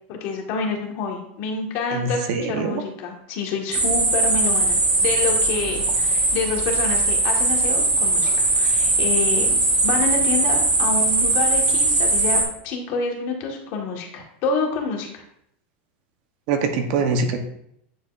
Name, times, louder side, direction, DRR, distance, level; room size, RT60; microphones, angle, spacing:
voice 1, 0.1-9.5 9.8-15.2, left 4 dB, 50° left, 1 dB, 1.6 m, -28 dB
voice 2, 1.9-2.7 16.5-17.4, right 4 dB, 50° right, 5 dB, 1.0 m, -23 dB
sound 1, 3.7-12.4, right 2 dB, 20° right, 1.5 m, -20 dB
9.2 x 4.6 x 2.5 m, 0.74 s
supercardioid pair, 150°, 6 cm